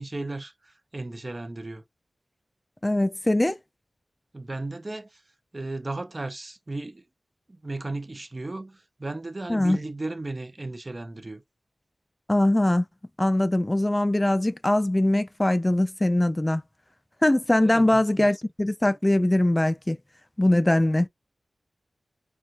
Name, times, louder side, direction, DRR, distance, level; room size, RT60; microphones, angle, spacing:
voice 1, 0.0-1.8 4.3-5.2 5.5-7.0 7.5-11.4 17.6-18.3, right 2 dB, 35° right, 0.6 m, -35 dB
voice 2, 2.8-3.6 9.5-9.8 12.3-12.9 13.2-16.6 17.2-20.0 20.4-21.1, left 1 dB, 20° left, 0.4 m, -22 dB
4.5 x 3.1 x 2.4 m
wide cardioid pair, 75°, 0 cm